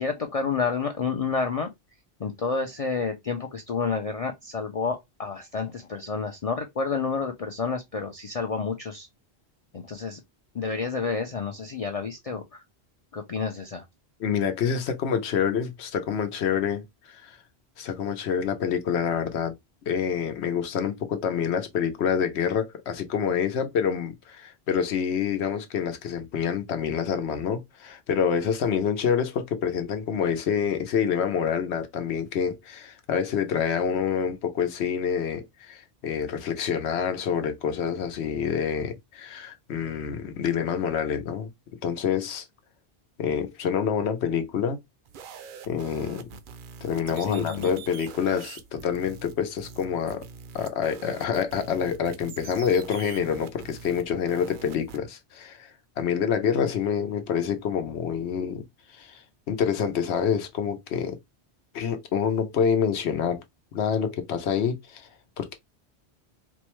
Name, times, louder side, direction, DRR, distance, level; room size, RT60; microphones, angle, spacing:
voice 1, 0.0-1.7 2.2-9.1 9.7-10.2 10.5-12.6 13.1-13.8 47.3-47.7, left 5 dB, 45° left, 0.5 m, -29 dB
voice 2, 14.2-16.8 17.1-17.4 17.8-19.5 19.9-41.5 41.8-42.5 43.2-44.8 45.7-46.2 46.8-50.3 50.5-55.7 56.0-58.6 58.9-61.2 61.7-63.4 63.7-65.1 65.4-65.5, left 7 dB, 85° left, 1.0 m, -27 dB
sound 1, 45.1-55.0, right 6 dB, 60° right, 0.6 m, -44 dB
4.4 x 2.1 x 3.0 m
omnidirectional pair, 1.1 m